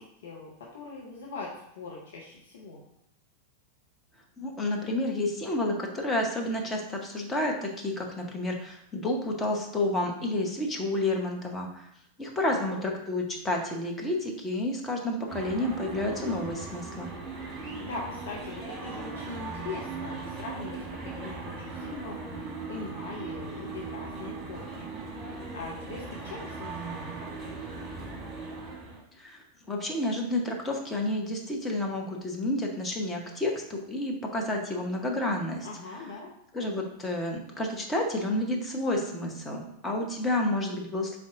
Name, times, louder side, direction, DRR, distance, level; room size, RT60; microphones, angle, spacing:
voice 1, 0.0-2.8 12.5-12.8 17.8-22.2 22.7-24.8 25.5-27.5 35.6-36.3, left 3 dB, 60° left, -2 dB, 0.7 m, -41 dB
voice 2, 4.4-11.9 12.2-17.1 29.2-35.7 36.5-41.2, left 1 dB, 15° left, 1 dB, 0.8 m, -30 dB
sound 1, 15.3-29.0, right 4 dB, 25° right, 1.2 m, -39 dB
4.1 x 3.4 x 3.7 m, 0.75 s
figure-of-eight pair, 90°, 0 cm